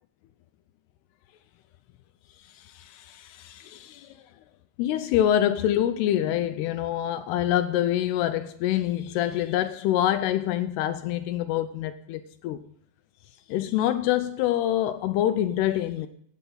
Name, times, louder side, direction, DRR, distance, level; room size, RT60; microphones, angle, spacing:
voice 1, 2.4-4.2 4.8-12.6 13.5-16.1, left 12 dB, 80° left, 2.5 m, -26 dB
17.0 x 8.2 x 3.9 m
omnidirectional pair, 4.9 m